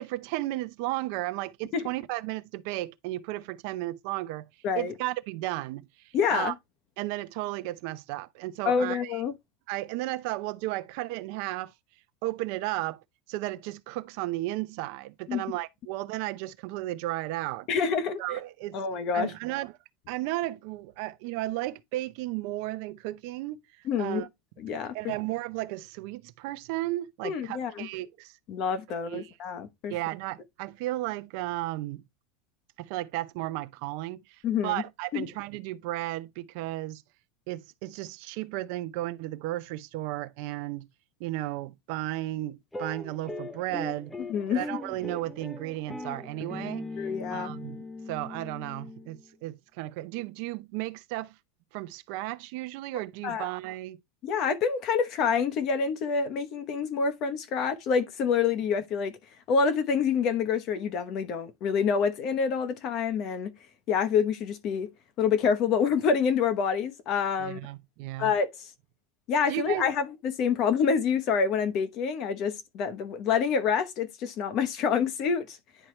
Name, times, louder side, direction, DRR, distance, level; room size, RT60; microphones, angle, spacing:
voice 1, 0.0-4.5 4.8-6.5 7.0-9.2 9.7-11.7 12.2-13.0 13.3-17.7 18.2-18.8 19.1-19.7 20.1-23.6 24.0-24.3 24.9-28.3 29.1-29.3 29.9-32.0 32.8-37.0 37.5-40.9 41.2-44.2 44.5-46.9 47.3-51.3 51.7-54.0 67.4-68.3 69.5-69.9, right 17 dB, 50° right, 0.6 m, -34 dB
voice 2, 6.1-6.5 8.6-9.3 15.3-15.4 17.7-18.2 18.7-19.3 23.9-24.2 24.6-24.9 27.2-27.9 28.5-29.9 34.4-34.8 35.1-35.2 44.3-44.6 47.0-47.5 53.2-53.5 54.2-59.2 59.5-63.5 63.9-64.9 65.2-67.6 68.2-68.7 69.3-75.6, left 6 dB, 35° left, 1.0 m, -27 dB
sound 1, 42.7-49.3, left 2 dB, 5° left, 0.6 m, -39 dB
10.0 x 4.5 x 3.1 m
supercardioid pair, 170°, 0 cm